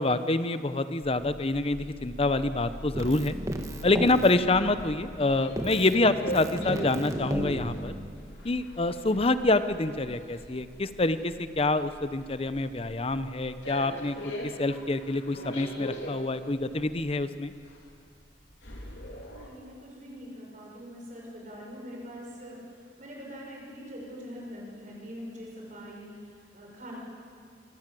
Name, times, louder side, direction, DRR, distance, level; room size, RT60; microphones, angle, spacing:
voice 1, 0.0-3.4 3.8-7.9 8.4-14.2 14.4-17.5, left 2 dB, 35° left, 12 dB, 0.8 m, -26 dB
sound 1, 1.2-19.5, equal, 90° left, 3.7 m, -42 dB
Keyboard (musical), 2.9-5.2 5.6-8.3, right 1 dB, 20° right, 1.5 m, -34 dB
voice 2, 19.2-22.6 23.0-27.0, equal, 45° right, -2 dB, 6.0 m, -43 dB
24.5 x 17.0 x 7.7 m, 2.2 s
head